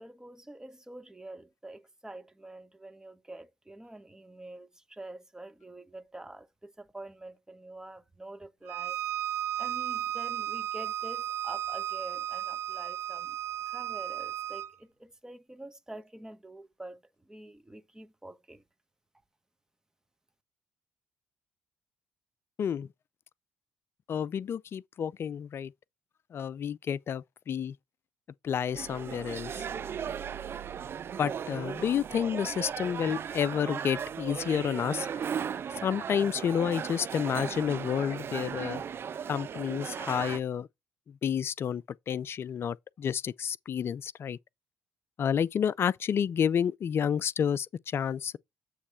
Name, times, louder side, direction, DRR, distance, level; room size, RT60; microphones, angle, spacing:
voice 1, 0.0-9.0 9.6-13.4 13.7-18.6, right 1 dB, 10° right, 1.2 m, -47 dB
Bowed string instrument, 8.7-14.7, right 11 dB, 65° right, 1.1 m, -34 dB
voice 2, 24.1-25.7 26.3-27.7 28.4-29.5 31.2-35.2 35.8-38.8 39.3-40.7 41.1-44.4 45.2-48.4, left 8 dB, 45° left, 0.4 m, -30 dB
sound 1, 28.7-40.4, right 8 dB, 45° right, 0.5 m, -37 dB
8.2 x 3.2 x 5.6 m
hypercardioid pair, 50°, 5 cm